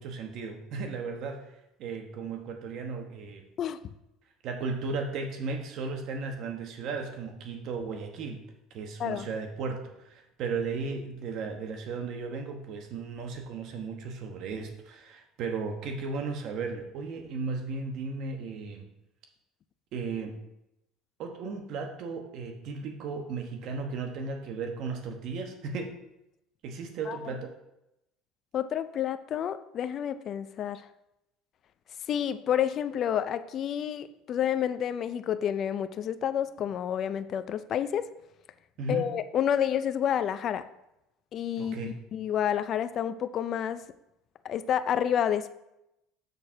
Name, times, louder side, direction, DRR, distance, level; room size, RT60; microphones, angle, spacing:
voice 1, 0.0-3.4 4.4-8.4 8.7-18.9 19.9-20.3 21.2-26.0 26.6-27.5 38.8-39.1 41.6-42.0, right 4 dB, 60° right, 4 dB, 1.1 m, -35 dB
voice 2, 28.5-30.8 32.1-38.1 38.9-40.6 41.3-43.8 44.4-45.5, left 9 dB, 45° left, 12 dB, 0.4 m, -29 dB
6.7 x 4.3 x 6.2 m, 0.88 s
supercardioid pair, 110°, 0 cm